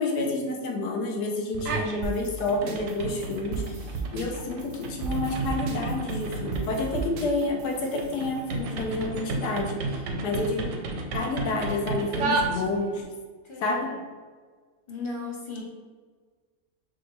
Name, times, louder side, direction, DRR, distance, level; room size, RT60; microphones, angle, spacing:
voice 1, 0.0-9.9 10.2-10.9 11.1-13.0 13.6-13.9, left 2 dB, 85° left, 1 dB, 1.3 m, -29 dB
sound 1, 1.5-2.1 2.4-13.0, right 3 dB, 70° right, 0.9 m, -32 dB
sound 2, 2.0-8.4, right 4 dB, 85° right, 1.2 m, -36 dB
voice 2, 13.4-14.0 14.9-15.6, left 3 dB, 40° left, -3 dB, 0.4 m, -36 dB
6.1 x 2.3 x 3.0 m, 1.5 s
omnidirectional pair, 1.7 m